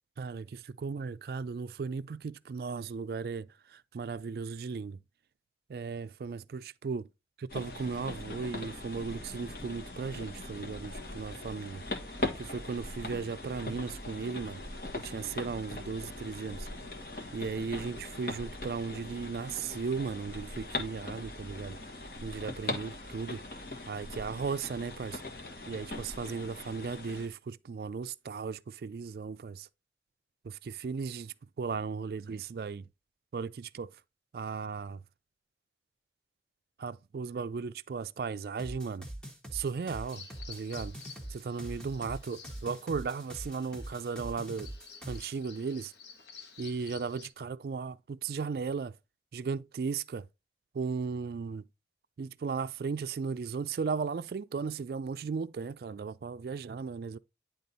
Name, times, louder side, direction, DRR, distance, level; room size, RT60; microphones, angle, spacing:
voice 1, 0.2-5.0 5.7-7.1 7.5-11.8 12.4-14.6 14.9-16.7 17.3-21.8 22.2-23.4 23.9-25.2 25.7-29.7 30.4-32.8 33.3-33.9 34.3-35.0 36.8-39.1 39.5-41.0 41.3-44.7 45.1-45.9 46.6-48.9 49.3-50.3 50.7-51.7 52.2-57.2, right 5 dB, 60° right, 0.3 m, -36 dB
sound 1, 7.5-27.3, left 2 dB, 55° left, 1.5 m, -40 dB
sound 2, 38.6-45.4, right 1 dB, 5° left, 1.1 m, -44 dB
Bird vocalization bird call bird song, 40.1-47.3, left 6 dB, 85° left, 1.4 m, -52 dB
10.0 x 3.7 x 4.0 m
head